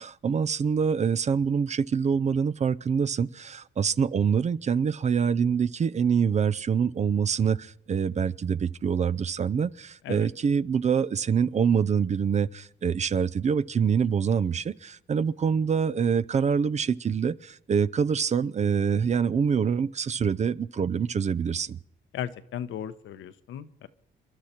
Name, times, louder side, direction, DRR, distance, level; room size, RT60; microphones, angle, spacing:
voice 1, 0.0-21.8, right 6 dB, 35° right, 0.5 m, -25 dB
voice 2, 22.1-23.9, left 10 dB, 75° left, 0.9 m, -36 dB
28.0 x 12.0 x 4.4 m
cardioid pair, 90°, 20 cm